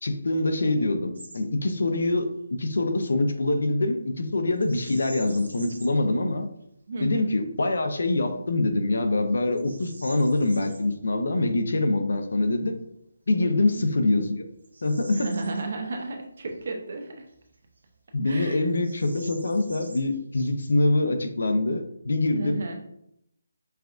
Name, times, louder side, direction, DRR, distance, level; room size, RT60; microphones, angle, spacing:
voice 1, 0.0-6.5 7.0-12.7 13.3-14.5 14.8-15.3 18.1-22.6, left 2 dB, 70° left, 6 dB, 0.6 m, -24 dB
Bird vocalization bird call bird song, 1.1-1.4 1.8-2.0 4.6-6.1 6.6-6.7 7.3-7.7 8.3-8.4 8.9-10.8 13.0-13.1 13.7-16.1 16.5-16.6 17.3-18.1 18.3-18.4 18.7-20.8, right 2 dB, 85° right, 0.9 m, -47 dB
voice 2, 6.9-7.3 13.4-13.8 15.1-17.2 18.2-18.6 22.4-22.8, right 3 dB, 50° right, 3 dB, 0.7 m, -33 dB
5.6 x 2.3 x 2.5 m, 0.76 s
hypercardioid pair, 170°, 0 cm